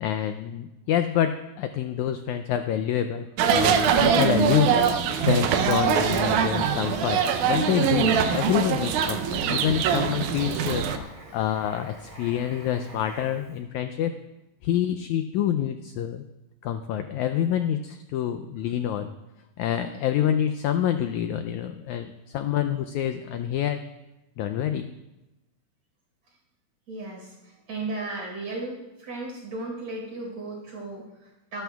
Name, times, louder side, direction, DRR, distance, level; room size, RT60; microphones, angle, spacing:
voice 1, 0.0-3.3 3.5-4.8 5.3-10.8 11.3-14.1 14.6-16.2 16.6-19.1 19.6-23.8 24.4-24.9, left 10 dB, 90° left, 9 dB, 1.6 m, -27 dB
sound 1, 3.4-11.0, right 7 dB, 75° right, 2.0 m, -23 dB
Writing, 3.7-13.5, right 1 dB, 15° right, 2.2 m, -43 dB
voice 2, 26.9-31.6, right 2 dB, 55° right, -3 dB, 5.8 m, -35 dB
24.5 x 12.5 x 2.3 m, 1.0 s
omnidirectional pair, 4.0 m